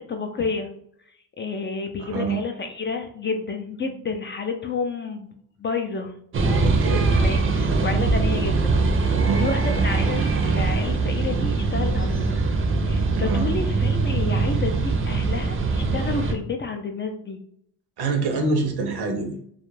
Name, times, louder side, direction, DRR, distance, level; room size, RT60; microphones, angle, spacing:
voice 1, 0.1-0.7 1.4-5.3 5.6-6.1 7.1-8.8 9.3-12.4 12.9-17.4, left 4 dB, 30° left, 5 dB, 0.3 m, -30 dB
voice 2, 2.0-2.4 6.6-7.1 9.1-9.5 13.1-13.5 18.0-19.3, right 3 dB, 75° right, 5 dB, 0.7 m, -26 dB
sound 1, 6.3-16.3, right 3 dB, 35° right, 0.5 m, -22 dB
2.3 x 2.1 x 3.1 m, 0.68 s
cardioid pair, 80°, 40 cm